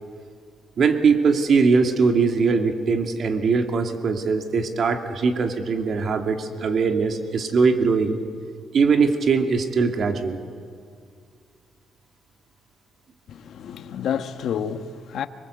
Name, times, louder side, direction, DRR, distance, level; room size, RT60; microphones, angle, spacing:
voice 1, 0.8-8.2 8.7-10.4, right 5 dB, 55° right, 2.4 m, -21 dB
voice 2, 13.3-15.3, left 8 dB, 70° left, 1.3 m, -29 dB
26.0 x 22.0 x 8.2 m
cardioid pair, 90°, 0 cm